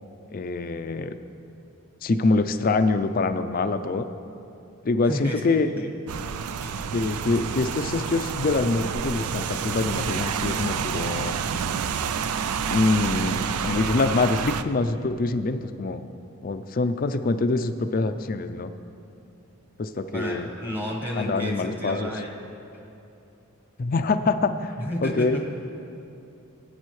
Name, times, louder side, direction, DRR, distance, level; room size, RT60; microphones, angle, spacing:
voice 1, 0.3-1.1 2.0-4.1 4.8-5.9 6.9-11.4 12.7-16.0 16.4-18.7 19.8-20.5 21.2-22.1 23.8-24.7 25.0-25.4, left 3 dB, 40° left, 9 dB, 0.4 m, -25 dB
voice 2, 5.0-5.4 5.8-5.9 6.6-6.8 20.1-22.3 24.8-25.4, left 1 dB, 10° right, 0 dB, 1.1 m, -31 dB
Rain, 6.1-14.6, right 7 dB, 85° right, 0.4 m, -29 dB
18.0 x 9.1 x 3.2 m, 2.7 s
head